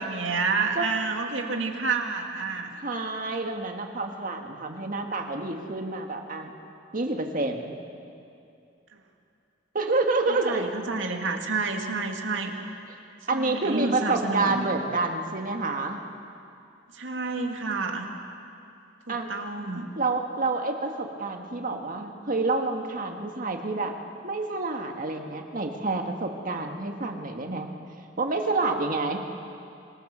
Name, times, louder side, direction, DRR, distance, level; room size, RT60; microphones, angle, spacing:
voice 1, 0.0-2.7 8.9-9.0 10.3-12.5 13.3-14.7 16.9-18.1 19.1-19.9, right 4 dB, 90° right, 3 dB, 2.1 m, -29 dB
voice 2, 2.8-6.5 6.9-7.7 9.7-10.7 13.3-16.0 19.1-19.3 20.0-23.9 24.2-27.7 28.2-29.3, right 3 dB, 45° right, 4 dB, 1.7 m, -28 dB
26.5 x 18.5 x 6.8 m, 2.6 s
head